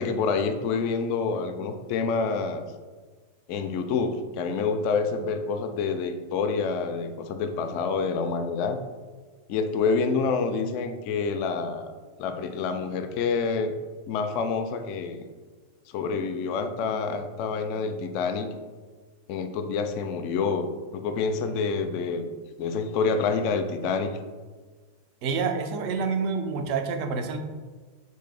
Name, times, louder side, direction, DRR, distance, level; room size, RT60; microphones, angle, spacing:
voice 1, 0.0-2.7 3.5-8.8 9.5-11.9 12.2-13.7 14.1-15.2 15.9-18.5 19.3-22.3 22.6-24.2, left 5 dB, 45° left, 7 dB, 0.3 m, -27 dB
voice 2, 25.2-27.4, right 5 dB, 45° right, 6 dB, 0.4 m, -28 dB
3.1 x 2.6 x 3.7 m, 1.4 s
figure-of-eight pair, 90°, 0 cm